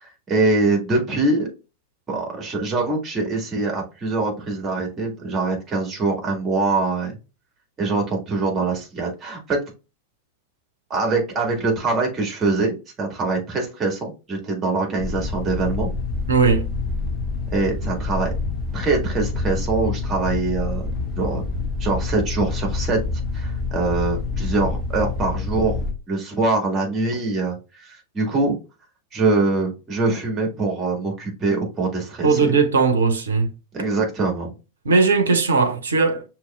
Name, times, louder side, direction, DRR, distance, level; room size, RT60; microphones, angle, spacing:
voice 1, 0.0-1.5 2.1-7.1 7.8-9.6 10.9-15.9 17.5-18.3 18.7-21.4 21.8-23.0 23.3-25.8 26.1-28.6 29.1-32.5 33.7-34.5, right 3 dB, 25° right, 1.8 m, -23 dB
sound 1, 15.0-25.9, left 3 dB, 20° left, 1.4 m, -27 dB
voice 2, 16.3-16.7 32.2-33.5 34.8-36.2, right 4 dB, 70° right, 0.8 m, -18 dB
6.2 x 3.1 x 2.2 m
figure-of-eight pair, 90°, 0 cm